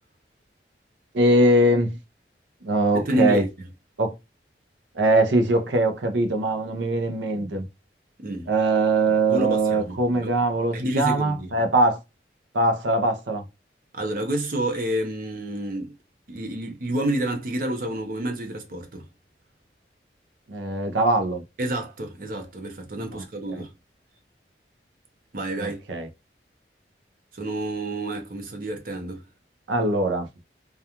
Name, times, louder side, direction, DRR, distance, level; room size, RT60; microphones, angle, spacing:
voice 1, 1.1-2.0 2.6-3.4 4.0-4.1 4.9-7.7 8.5-12.0 12.5-13.4 20.5-21.4 23.1-23.2 23.5-23.6 25.6-26.1 29.7-30.3, right 2 dB, 90° right, 0.6 m, -22 dB
voice 2, 2.9-3.5 8.2-8.5 9.3-10.3 10.7-11.5 13.9-15.9 16.3-19.1 21.6-23.7 25.3-25.8 27.3-29.2, right 1 dB, 50° right, 0.7 m, -29 dB
2.4 x 2.3 x 2.8 m
head